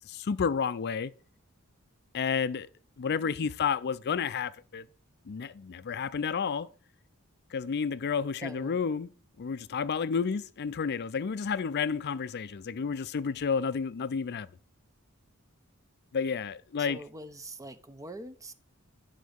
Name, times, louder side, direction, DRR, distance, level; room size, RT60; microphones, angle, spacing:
voice 1, 0.0-1.1 2.1-2.7 3.0-4.9 5.3-6.7 7.5-9.1 9.4-14.5 16.1-17.0, left 6 dB, 50° left, 0.4 m, -31 dB
voice 2, 8.4-8.8 16.8-18.5, right 1 dB, 15° right, 0.6 m, -43 dB
10.5 x 3.9 x 6.3 m
head